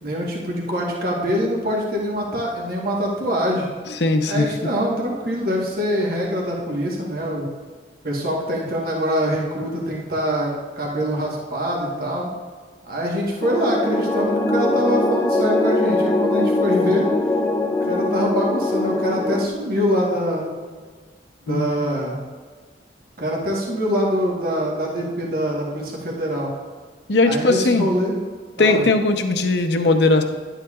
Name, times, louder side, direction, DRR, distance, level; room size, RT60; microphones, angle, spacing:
voice 1, 0.0-3.7 4.3-7.5 8.0-12.3 12.8-17.1 17.8-20.5 21.4-22.2 23.2-26.5 27.2-28.2 28.6-28.8, equal, 55° right, -2 dB, 1.3 m, -24 dB
voice 2, 4.0-4.5 21.5-21.7 27.1-27.9 28.6-30.2, left 2 dB, 65° left, 6 dB, 0.8 m, -18 dB
sound 1, 13.4-19.5, left 2 dB, 15° left, 0.4 m, -21 dB
11.0 x 8.9 x 2.4 m, 1.5 s
head